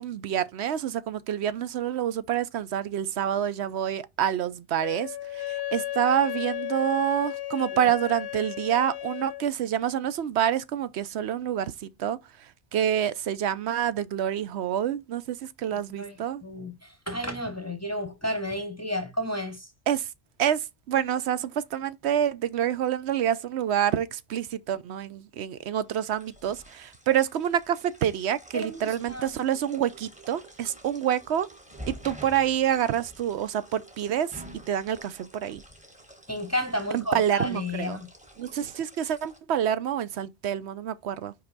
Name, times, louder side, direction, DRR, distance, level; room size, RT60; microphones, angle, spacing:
voice 1, 0.0-16.4 19.9-20.1 20.4-31.5 31.9-34.3 34.7-35.6 36.9-38.0 38.4-41.3, right 10 dB, 80° right, 0.9 m, -27 dB
Wind instrument woodwind instrument, 4.8-9.5, left 13 dB, 70° left, 0.8 m, -34 dB
voice 2, 15.7-16.2 16.4-19.7 28.5-29.3 36.3-38.1, left 1 dB, 15° left, 0.8 m, -32 dB
sound 1, 25.8-39.4, right 1 dB, 5° right, 1.3 m, -49 dB
5.6 x 5.1 x 4.0 m
omnidirectional pair, 1.1 m